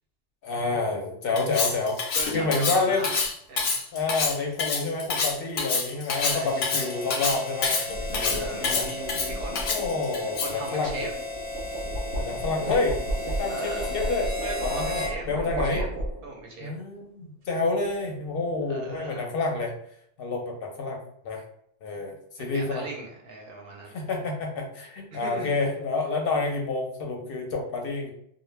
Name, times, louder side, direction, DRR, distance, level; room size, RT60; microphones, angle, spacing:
voice 1, 0.4-2.0 2.3-3.1 3.9-8.9 9.7-11.1 12.1-13.0 13.3-14.3 14.6-15.8 16.6-19.7 20.2-21.0 21.2-21.4 21.8-22.9 23.9-28.1, left 3 dB, 60° left, 1 dB, 0.7 m, -28 dB
voice 2, 1.3-1.7 2.1-3.2 3.5-3.8 6.1-6.9 8.1-9.7 10.4-11.1 13.5-13.9 14.4-15.9 16.2-16.7 18.7-19.3 22.5-24.0 25.1-25.5, right 3 dB, 60° right, -1 dB, 0.8 m, -38 dB
Cutlery silverware, 1.4-10.7, left 4 dB, 90° left, 0.9 m, -27 dB
Harmonica, 6.1-15.2, left 2 dB, 20° left, 0.6 m, -35 dB
sound 1, 7.6-16.5, right 1 dB, 85° right, 1.0 m, -34 dB
2.1 x 2.1 x 3.2 m, 0.70 s
omnidirectional pair, 1.2 m